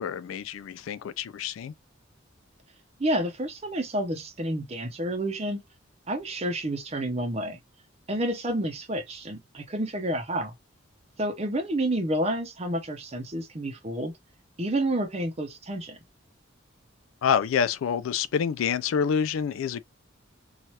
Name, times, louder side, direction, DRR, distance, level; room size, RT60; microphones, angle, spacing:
voice 1, 0.0-1.7 17.2-19.8, left 7 dB, 85° left, 0.3 m, -27 dB
voice 2, 3.0-5.6 6.1-7.6 8.1-10.5 11.2-14.1 14.6-16.0, right 1 dB, 30° right, 0.6 m, -29 dB
2.8 x 2.4 x 3.1 m
head